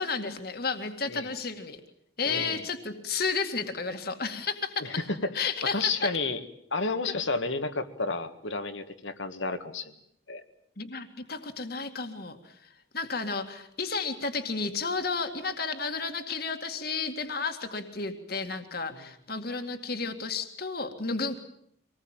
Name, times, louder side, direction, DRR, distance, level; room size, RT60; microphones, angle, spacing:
voice 1, 0.0-1.8 2.2-5.0 5.3-6.1 7.0-7.1 10.8-21.4, left 4 dB, 50° left, 6 dB, 2.2 m, -32 dB
voice 2, 2.2-2.6 4.8-4.9 5.2-6.4 6.7-9.9 10.3-10.4 18.9-19.0, left 3 dB, 75° left, 8 dB, 2.0 m, -31 dB
25.5 x 20.0 x 9.0 m, 0.71 s
head